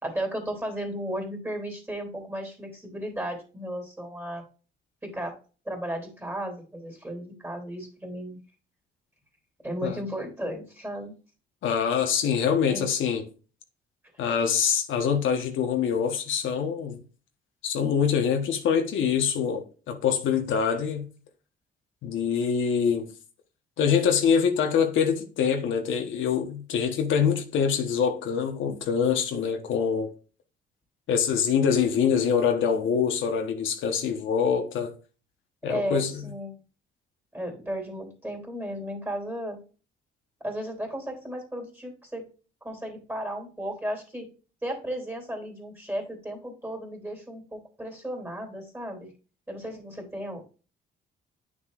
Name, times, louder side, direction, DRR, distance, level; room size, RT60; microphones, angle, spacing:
voice 1, 0.0-4.4 5.0-5.4 5.6-8.4 9.6-11.1 12.7-12.9 35.6-36.6 37.3-39.6 40.4-42.3 42.6-44.3 44.6-49.1 49.5-50.4, right 1 dB, 10° right, 3.0 m, -34 dB
voice 2, 11.6-13.2 14.2-17.0 17.6-21.1 22.0-23.1 23.8-30.1 31.1-34.9 35.6-36.3, left 7 dB, 75° left, 1.2 m, -25 dB
9.3 x 6.2 x 2.5 m
cardioid pair, 90°, 20 cm